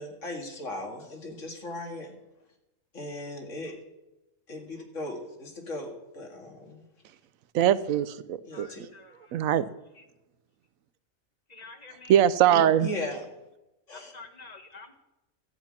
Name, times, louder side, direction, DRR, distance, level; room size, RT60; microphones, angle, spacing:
voice 1, 0.0-2.1 2.9-3.7 4.5-6.8 8.4-8.8 12.8-13.2 13.9-14.1, left 1 dB, 65° left, 2 dB, 2.5 m, -37 dB
voice 2, 7.5-8.7 9.3-9.7 12.1-12.9, right 10 dB, 85° right, 16 dB, 1.0 m, -22 dB
voice 3, 8.5-9.4 9.9-10.0 11.5-12.2 13.9-15.0, left 3 dB, 30° left, 5 dB, 1.5 m, -48 dB
13.0 x 5.9 x 8.8 m, 0.95 s
omnidirectional pair, 1.4 m